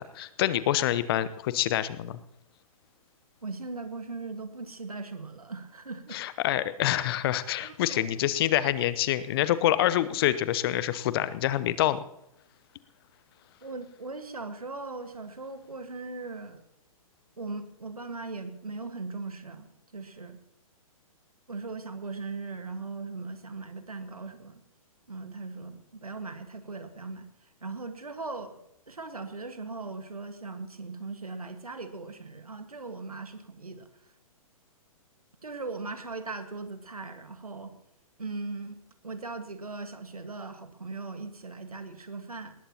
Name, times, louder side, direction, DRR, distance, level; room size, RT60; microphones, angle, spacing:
voice 1, 0.0-2.2 6.1-12.0, left 13 dB, 40° left, 15 dB, 0.8 m, -26 dB
voice 2, 3.4-6.2 7.6-8.1 13.6-16.6 17.4-20.4 21.5-24.6 25.1-28.6 28.9-33.9 35.4-37.7 38.2-38.7 39.0-42.5, right 3 dB, 85° right, 8 dB, 1.6 m, -39 dB
19.5 x 18.5 x 2.9 m, 0.84 s
figure-of-eight pair, 120°, 18 cm